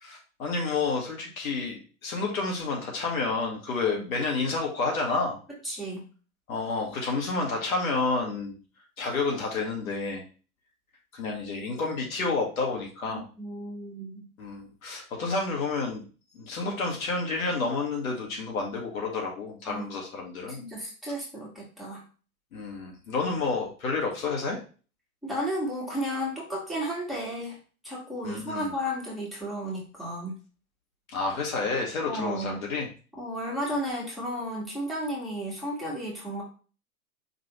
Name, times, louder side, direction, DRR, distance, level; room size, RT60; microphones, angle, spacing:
voice 1, 0.0-5.4 6.5-8.5 9.0-10.2 11.1-13.3 14.4-16.1 16.3-20.6 22.5-24.6 28.2-28.7 31.1-32.9, left 3 dB, 65° left, 0 dB, 1.8 m, -30 dB
voice 2, 5.6-6.0 13.1-14.3 19.6-19.8 20.6-22.0 25.2-27.6 27.8-30.3 32.1-32.6 33.2-36.4, equal, ahead, -5 dB, 1.6 m, -33 dB
5.0 x 3.3 x 3.0 m, 0.37 s
figure-of-eight pair, 105°, 45 cm